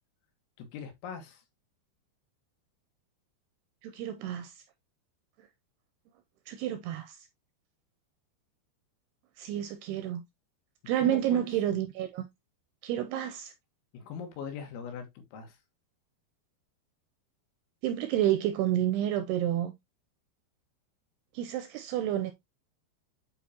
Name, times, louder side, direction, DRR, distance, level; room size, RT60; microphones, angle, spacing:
voice 1, 0.6-1.4 11.0-11.5 13.9-15.6, left 6 dB, 85° left, 3.8 m, -41 dB
voice 2, 3.8-4.5 6.5-7.2 9.4-10.2 10.9-12.3 12.8-13.5 17.8-19.7 21.3-22.3, right 11 dB, 80° right, 2.4 m, -29 dB
9.3 x 4.5 x 2.8 m
omnidirectional pair, 5.2 m